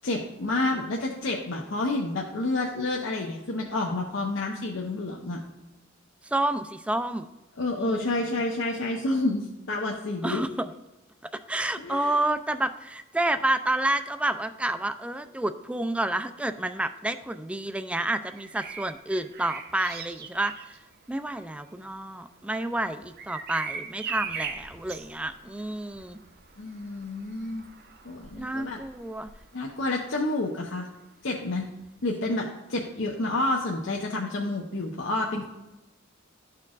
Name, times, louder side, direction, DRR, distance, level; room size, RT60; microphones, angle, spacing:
voice 1, 0.0-5.4 7.6-10.4 11.8-12.1 26.6-27.7 28.0-28.8 29.5-30.9 31.2-31.7 32.0-35.4, left 2 dB, 65° left, 0 dB, 0.7 m, -29 dB
voice 2, 6.3-7.3 7.8-8.1 10.2-10.7 11.2-20.5 21.1-26.2 28.4-29.3, right 1 dB, 5° right, 9 dB, 0.3 m, -29 dB
Bird vocalization bird call bird song, 18.3-30.1 31.8-32.0, right 6 dB, 55° right, 0.7 m, -41 dB
12.5 x 4.5 x 2.4 m, 1.0 s
head